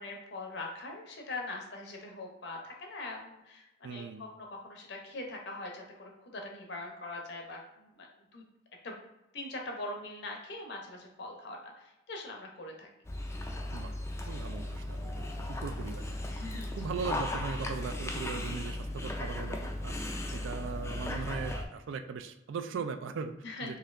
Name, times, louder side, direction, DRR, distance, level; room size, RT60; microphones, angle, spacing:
voice 1, 0.0-8.1 8.3-8.5 8.8-8.9 9.3-12.9 16.3-16.8 20.3-20.4 23.4-23.8, left 2 dB, 60° left, 1 dB, 0.7 m, -42 dB
voice 2, 3.8-4.3 13.7-13.9 14.3-16.2 16.7-23.3 23.6-23.8, right 5 dB, 70° right, 9 dB, 0.3 m, -39 dB
Dog, 13.1-21.6, left 1 dB, 15° left, 0.3 m, -36 dB
4.1 x 2.7 x 2.5 m, 0.93 s
head